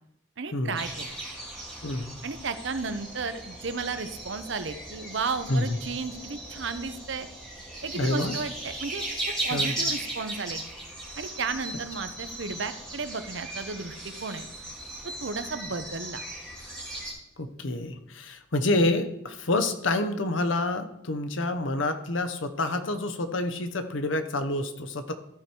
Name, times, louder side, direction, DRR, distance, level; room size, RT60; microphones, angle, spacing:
voice 1, 0.4-1.1 2.2-7.3 7.8-9.0 9.4-10.6 11.2-14.5 15.0-16.2, right 4 dB, 60° right, 10 dB, 0.7 m, -33 dB
sound 1, 0.8-17.1, right 2 dB, 5° left, 2.5 m, -37 dB
voice 2, 7.9-8.4 9.5-9.7 17.4-25.1, left 2 dB, 70° left, 8 dB, 0.9 m, -28 dB
13.5 x 4.8 x 4.5 m, 0.82 s
head